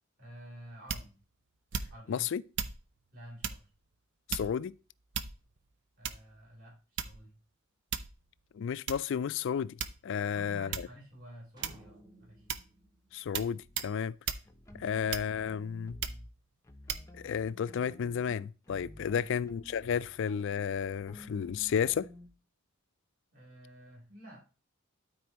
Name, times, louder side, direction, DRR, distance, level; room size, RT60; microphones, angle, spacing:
voice 1, 0.2-1.2 1.9-2.3 3.1-3.6 6.0-7.3 10.2-12.5 14.7-14.8 19.0-19.3 23.3-24.4, right 1 dB, 45° right, 3.5 m, -51 dB
sound 1, 0.9-1.2 1.7-2.1 2.6-2.8 3.4-3.7 4.3-4.7 5.1-5.6 6.0-6.4 7.0-7.3 7.9-8.2 8.9-9.0 9.8-10.2 10.7-11.0 11.6-12.0 12.5-12.7 13.3-13.5 13.8-13.9 14.3-14.5 15.1-15.5 16.0-16.3 16.9-17.1, right 7 dB, 60° right, 0.6 m, -36 dB
voice 2, 2.1-2.4 4.3-4.7 8.5-9.8 10.0-10.7 13.1-14.2 14.8-16.0 17.2-22.1, left 7 dB, 60° left, 0.3 m, -32 dB
sound 2, 11.6-14.0, right 1 dB, 20° right, 1.1 m, -59 dB
sound 3, 13.6-13.9 14.5-16.3 16.6-22.3, left 1 dB, 15° left, 0.6 m, -52 dB
12.5 x 4.4 x 3.0 m
head